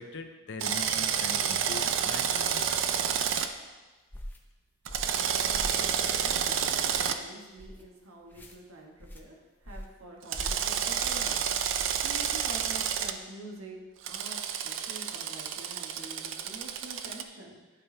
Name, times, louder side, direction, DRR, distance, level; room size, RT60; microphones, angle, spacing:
voice 1, 0.0-2.7, left 3 dB, 60° left, 7 dB, 0.6 m, -41 dB
Drill, 0.6-3.5 4.9-7.2 10.3-13.1 14.0-17.2, right 8 dB, 65° right, 0.5 m, -29 dB
sound 1, 4.1-4.4 4.9-5.2 5.5-5.8 6.2-6.5 6.9-7.1 7.6-7.8 8.3-8.6 9.0-9.2 9.6-10.0 10.3-10.6 11.0-11.2 11.7-11.9, equal, 10° left, 0.5 m, -42 dB
voice 2, 5.9-9.3 9.6-13.8 14.1-17.6, right 2 dB, 90° right, -1 dB, 1.5 m, -47 dB
11.0 x 5.6 x 3.3 m, 1.2 s
head